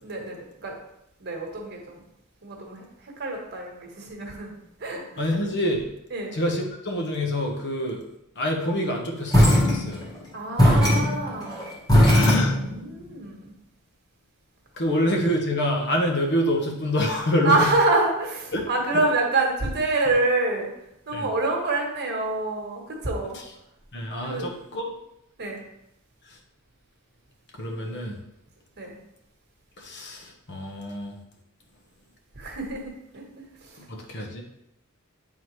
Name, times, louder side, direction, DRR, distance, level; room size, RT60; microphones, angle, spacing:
voice 1, 0.0-0.8 1.2-2.0 2.4-5.0 6.1-6.3 10.3-11.7 12.1-13.5 14.9-15.0 17.4-20.7 21.1-23.4 24.3-24.5 25.4-25.6 28.8-29.0 32.3-33.8, right 2 dB, 50° right, 0 dB, 1.4 m, -27 dB
voice 2, 5.2-5.9 6.3-8.0 8.4-10.0 14.8-17.6 18.5-18.7 21.1-21.3 23.9-24.8 27.6-28.2 29.8-31.1 33.9-34.4, equal, 55° left, 2 dB, 1.1 m, -26 dB
sound 1, 9.3-10.2 10.6-13.0, equal, 20° left, 1.7 m, -19 dB
Gasp, 12.0-12.6, left 4 dB, 70° left, 0.5 m, -27 dB
9.0 x 3.8 x 3.2 m, 0.81 s
head